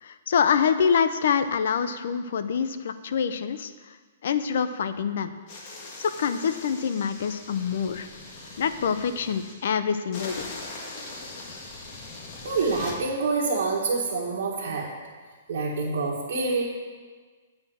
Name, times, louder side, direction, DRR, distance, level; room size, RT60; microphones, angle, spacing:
voice 1, 0.0-3.7 4.2-5.3 6.0-8.1 8.6-10.5, left 7 dB, 65° left, 11 dB, 0.6 m, -25 dB
sound 1, 5.5-9.5 10.1-13.0, left 2 dB, 40° left, 1.7 m, -41 dB
voice 2, 12.4-14.9 15.5-16.6, right 3 dB, 70° right, -5 dB, 1.6 m, -26 dB
8.7 x 4.4 x 7.1 m, 1.5 s
hypercardioid pair, 155°, 0 cm